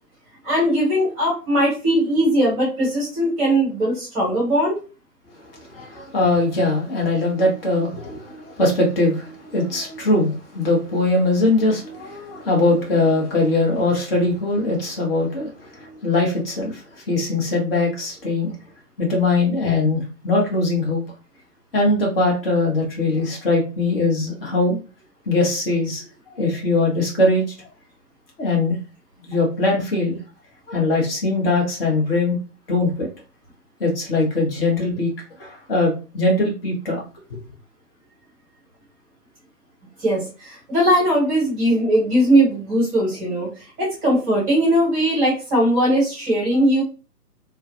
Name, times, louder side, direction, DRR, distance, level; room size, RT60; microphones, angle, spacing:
voice 1, 0.4-4.8 40.0-46.8, right 1 dB, 20° right, 1.0 m, -19 dB
voice 2, 5.3-18.5 19.0-21.0 21.7-24.8 25.3-26.1 26.3-27.7 28.4-28.8 29.3-30.2 30.7-32.4 32.7-33.1 33.8-35.1 35.4-37.0, left 2 dB, 35° left, 0.9 m, -21 dB
2.3 x 2.2 x 2.6 m
figure-of-eight pair, 135°, 48 cm